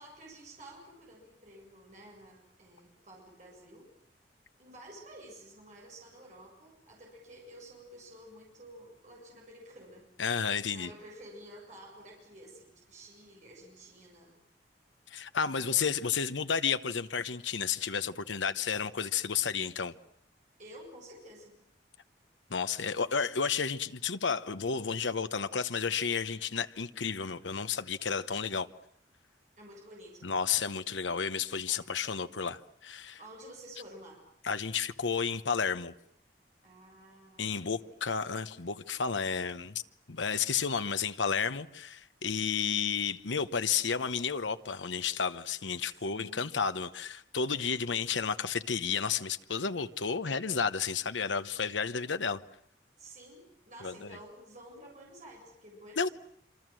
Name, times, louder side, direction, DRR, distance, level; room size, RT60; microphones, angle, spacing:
voice 1, 0.0-3.9 4.6-10.1 10.7-14.3 15.4-16.0 20.6-21.6 29.6-30.4 31.6-32.5 33.2-34.2 36.6-38.0 46.0-46.5 53.0-56.1, right 1 dB, 40° right, 7.6 m, -51 dB
voice 2, 10.2-10.9 15.1-19.9 22.5-28.7 30.2-33.2 34.4-35.9 37.4-39.8 40.1-52.4 53.8-54.1 56.0-56.1, left 6 dB, 85° left, 1.0 m, -32 dB
27.0 x 25.5 x 7.7 m
head